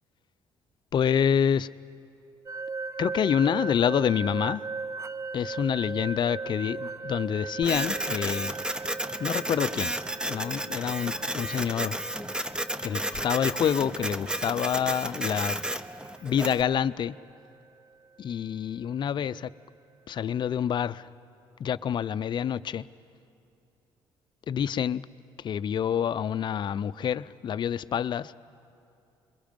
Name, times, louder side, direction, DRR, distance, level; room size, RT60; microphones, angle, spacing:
voice 1, 0.9-1.7 3.0-4.6 5.3-8.5 9.2-9.9 10.3-12.0 12.8-15.6 16.2-17.1 18.2-19.5 20.1-21.0 21.6-22.8 24.5-25.0 25.4-28.3, left 8 dB, 50° left, 15 dB, 0.5 m, -27 dB
sound 1, 2.5-17.3, right 4 dB, 30° right, 0.5 m, -39 dB
Printer, 7.6-16.6, right 1 dB, 10° right, 0.8 m, -32 dB
28.0 x 22.0 x 5.3 m, 2.6 s
cardioid pair, 95°, 10 cm